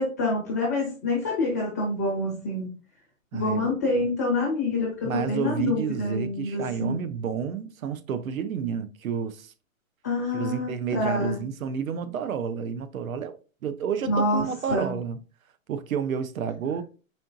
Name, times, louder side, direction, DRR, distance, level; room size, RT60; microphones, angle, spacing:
voice 1, 0.0-2.7 3.3-7.0 10.0-11.3 14.1-14.9, left 2 dB, 15° left, 0.5 m, -27 dB
voice 2, 3.3-3.7 5.0-9.5 10.3-13.3 13.6-15.2 15.7-16.8, right 7 dB, 80° right, 0.6 m, -30 dB
4.3 x 3.7 x 2.4 m
hypercardioid pair, 165°, 41 cm